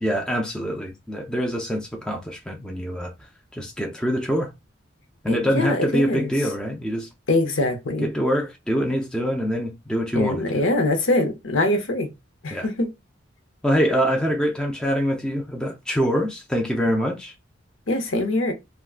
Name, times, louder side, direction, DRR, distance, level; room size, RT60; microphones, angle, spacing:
voice 1, 0.0-3.1 3.5-4.5 5.2-7.1 8.0-10.6 12.5-12.7 13.6-17.3, equal, 5° left, 0.4 m, -24 dB
voice 2, 5.3-6.3 7.3-8.1 10.1-12.1 12.4-12.9 17.9-18.5, left 2 dB, 90° left, 0.8 m, -23 dB
3.5 x 2.1 x 2.4 m
head